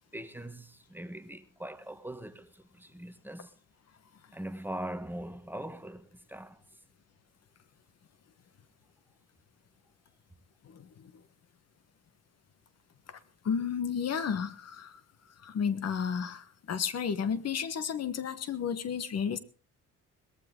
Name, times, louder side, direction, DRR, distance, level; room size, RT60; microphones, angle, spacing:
voice 1, 0.1-3.5 4.3-6.6, right 1 dB, 5° right, 1.2 m, -41 dB
voice 2, 10.6-11.2 13.1-13.2 13.4-15.0 15.4-19.4, left 7 dB, 55° left, 1.3 m, -32 dB
18.5 x 14.5 x 3.7 m
cardioid pair, 90°, 30 cm